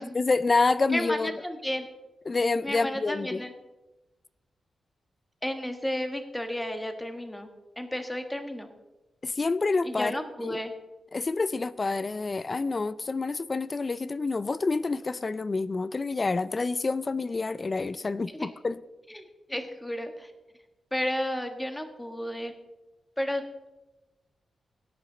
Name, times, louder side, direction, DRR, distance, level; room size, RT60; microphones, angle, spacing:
voice 1, 0.1-1.3 2.3-3.4 9.2-10.6 11.1-18.8, left 3 dB, 35° left, 16 dB, 0.4 m, -28 dB
voice 2, 0.9-1.9 2.6-3.5 5.4-7.5 7.8-8.7 9.8-10.7 18.3-18.5 19.1-19.2 19.5-20.3 20.9-22.5 23.2-23.7, left 1 dB, 10° left, 6 dB, 1.5 m, -32 dB
17.5 x 8.3 x 4.0 m, 1.1 s
cardioid pair, 85°, 0 cm